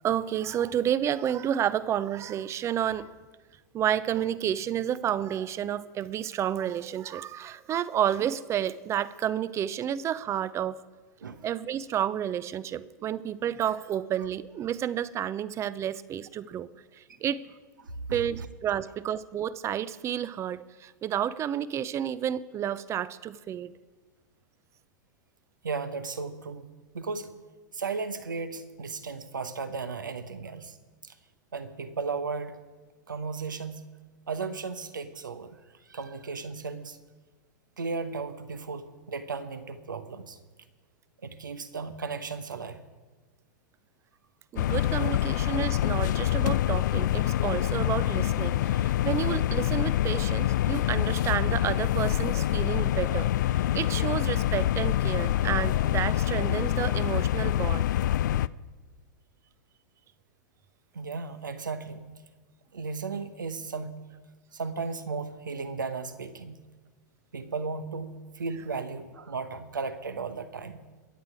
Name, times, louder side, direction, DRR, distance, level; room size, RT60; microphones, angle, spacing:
voice 1, 0.0-3.1 3.7-10.8 11.4-16.7 17.0-17.4 18.1-23.7 44.5-57.8, right 10 dB, 30° right, 18 dB, 0.5 m, -30 dB
voice 2, 25.6-26.7 26.9-27.3 27.7-30.8 31.0-31.1 31.5-32.6 33.1-33.9 34.3-35.5 35.9-37.0 37.8-40.4 41.2-42.8 45.0-45.1 60.9-62.1 62.7-64.0 64.5-66.6 67.3-68.1 68.4-70.8, right 4 dB, 90° right, 10 dB, 1.0 m, -35 dB
sound 1, 44.6-58.5, left 12 dB, 70° left, 0.4 m, -26 dB
22.5 x 8.1 x 4.9 m, 1.3 s
hypercardioid pair, 105°, 10 cm